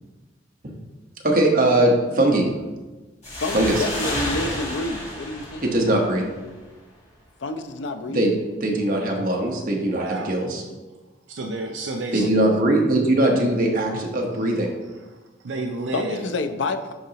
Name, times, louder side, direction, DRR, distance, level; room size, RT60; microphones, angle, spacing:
voice 1, 1.2-2.4 3.5-3.7 5.6-6.2 8.1-8.3 8.6-10.6 12.1-14.7, right 1 dB, 45° right, 0 dB, 1.0 m, -20 dB
sound 1, 3.2-6.6, left 1 dB, 35° left, 1.8 m, -31 dB
voice 2, 3.4-5.7 7.4-8.3 12.2-12.4 15.9-16.9, left 2 dB, 70° left, 8 dB, 0.5 m, -28 dB
voice 3, 9.9-10.3 11.3-12.2 15.4-16.2, right 2 dB, 70° right, 2 dB, 0.5 m, -30 dB
10.5 x 3.8 x 2.9 m, 1.2 s
head